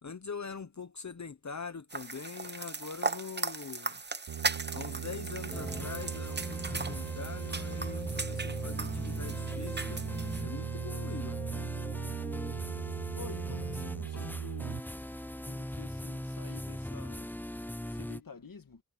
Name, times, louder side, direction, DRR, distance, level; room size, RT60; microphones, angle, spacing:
voice 1, 0.0-4.0 4.7-10.0 10.4-11.4 14.1-14.3, left 5 dB, 50° left, 1.0 m, -43 dB
sound 1, 1.9-10.4, right 4 dB, 30° right, 0.9 m, -38 dB
sound 2, 4.3-14.8, right 10 dB, 80° right, 0.7 m, -39 dB
sound 3, 5.5-18.2, left 1 dB, 5° left, 0.9 m, -39 dB
voice 2, 13.1-14.9 15.4-18.8, left 5 dB, 70° left, 1.7 m, -49 dB
wide cardioid pair, 50°, 36 cm